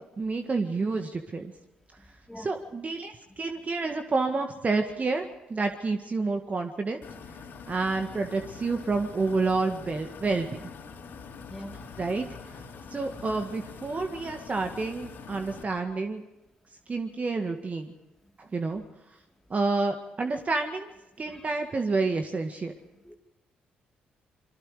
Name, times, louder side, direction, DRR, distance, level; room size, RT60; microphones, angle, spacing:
voice 1, 0.0-1.5 2.4-7.0 7.7-10.6 12.0-12.3 12.9-16.2 16.9-17.9 18.4-18.8 19.5-20.9 21.2-22.7, right 3 dB, 35° right, 5 dB, 1.9 m, -29 dB
voice 2, 2.0-2.5 11.5-11.9 21.3-21.4 23.0-23.2, left 1 dB, 5° left, 2 dB, 4.2 m, -44 dB
sound 1, 7.0-15.6, left 5 dB, 65° left, 3.8 m, -44 dB
27.5 x 22.5 x 5.0 m, 0.93 s
hypercardioid pair, 50°, 4 cm